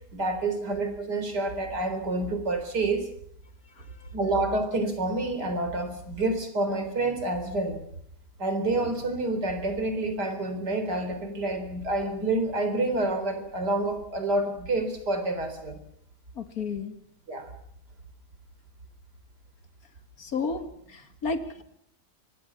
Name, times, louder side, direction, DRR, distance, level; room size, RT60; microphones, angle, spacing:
voice 1, 0.1-3.1 4.1-7.8 8.4-15.8 17.3-17.5, right 2 dB, 90° right, 8 dB, 4.6 m, -28 dB
voice 2, 3.8-4.1 16.4-17.0 20.2-21.6, left 4 dB, 60° left, 9 dB, 2.4 m, -33 dB
25.0 x 20.0 x 7.4 m, 0.68 s
omnidirectional pair, 1.7 m